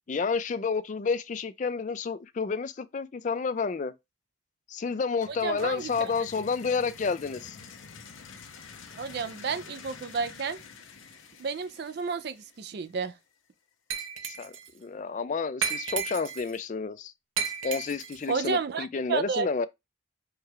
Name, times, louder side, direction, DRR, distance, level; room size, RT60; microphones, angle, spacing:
voice 1, 0.1-3.9 4.7-7.6 14.3-17.1 17.6-19.7, left 5 dB, 40° left, 0.3 m, -30 dB
sound 1, 5.2-13.0, left 5 dB, 80° left, 0.8 m, -48 dB
voice 2, 5.3-6.1 9.0-10.6 11.4-13.1 18.3-19.7, right 5 dB, 50° right, 0.4 m, -31 dB
Glass, 13.9-14.7 15.6-16.6 17.4-18.3, right 7 dB, 80° right, 0.8 m, -33 dB
4.7 x 2.3 x 4.6 m
head